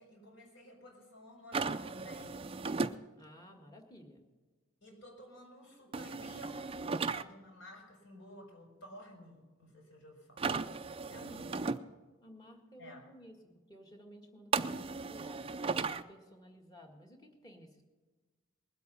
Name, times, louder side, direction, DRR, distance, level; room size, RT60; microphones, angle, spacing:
voice 1, 0.0-2.5 4.8-10.7 11.1-11.7 12.8-13.1, left 1 dB, 60° left, 1 dB, 4.7 m, -53 dB
sound 1, 1.5-3.0 5.9-7.2 10.4-11.8 14.5-16.0, right 4 dB, 25° right, 0.4 m, -35 dB
voice 2, 3.2-4.2 11.1-11.8 12.2-13.4 13.7-17.8, equal, 20° left, 2 dB, 1.8 m, -55 dB
20.5 x 8.3 x 5.6 m, 1.3 s
head